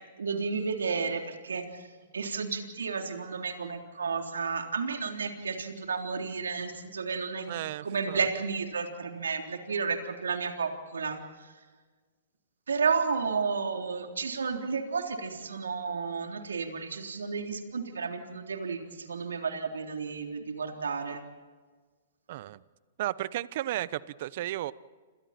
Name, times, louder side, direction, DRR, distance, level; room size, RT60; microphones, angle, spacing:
voice 1, 0.2-1.9 2.1-7.5 7.8-11.5 12.7-21.2, right 5 dB, 85° right, 4 dB, 3.5 m, -32 dB
voice 2, 7.5-8.3 22.3-22.6 23.0-24.7, right 14 dB, 55° right, 18 dB, 0.9 m, -34 dB
28.5 x 28.5 x 4.4 m, 1.4 s
hypercardioid pair, 125°, 0 cm